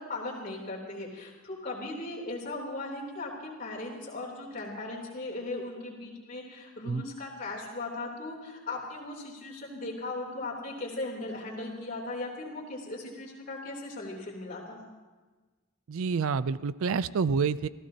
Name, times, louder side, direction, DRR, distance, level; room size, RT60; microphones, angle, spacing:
voice 1, 0.0-14.8, left 2 dB, 40° left, -3 dB, 3.3 m, -38 dB
voice 2, 15.9-17.7, right 5 dB, 70° right, 16 dB, 0.4 m, -28 dB
26.0 x 16.0 x 2.8 m, 1.3 s
head